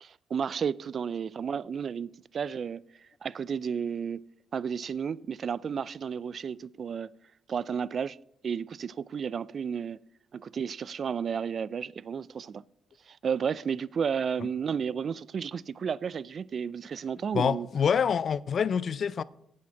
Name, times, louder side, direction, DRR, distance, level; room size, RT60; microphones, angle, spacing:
voice 1, 0.0-2.8 3.2-4.2 4.5-7.1 7.5-8.2 8.4-10.0 10.3-12.6 13.1-17.7, right 7 dB, 50° right, 0.3 m, -32 dB
voice 2, 17.3-19.2, left 7 dB, 50° left, 0.4 m, -26 dB
8.6 x 8.5 x 5.8 m
cardioid pair, 90°, 0 cm